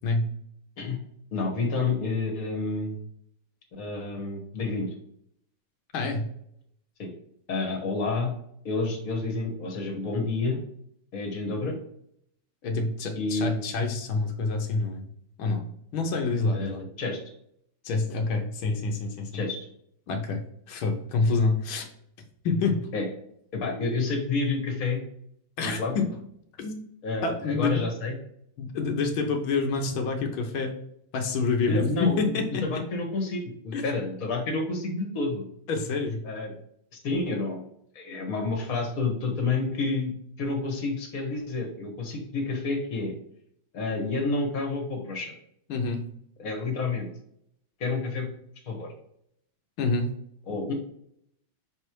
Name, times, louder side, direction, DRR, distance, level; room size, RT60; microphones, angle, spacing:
voice 1, 1.3-3.0 3.7-4.9 7.0-7.1 7.5-8.3 8.7-10.6 11.1-11.8 13.2-13.6 16.5-17.2 19.3-19.6 22.9-23.1 23.5-25.0 25.6-25.9 27.0-28.1 31.7-32.2 32.6-35.4 36.3-36.5 36.9-37.6 38.0-40.1 40.4-43.1 43.7-45.3 46.4-47.1 47.8-48.3 48.7-48.9 50.5-50.7, left 3 dB, 45° left, 1 dB, 1.7 m, -29 dB
voice 2, 5.9-6.3 12.6-15.1 15.4-16.8 17.8-19.4 20.1-21.8 22.4-22.8 25.6-26.1 26.6-26.9 27.2-27.8 28.6-30.7 31.1-32.8 33.7-33.9 35.7-36.2 45.7-46.1 49.8-50.1, left 3 dB, 90° left, 3 dB, 1.8 m, -27 dB
6.5 x 3.4 x 4.5 m, 0.71 s
omnidirectional pair, 2.2 m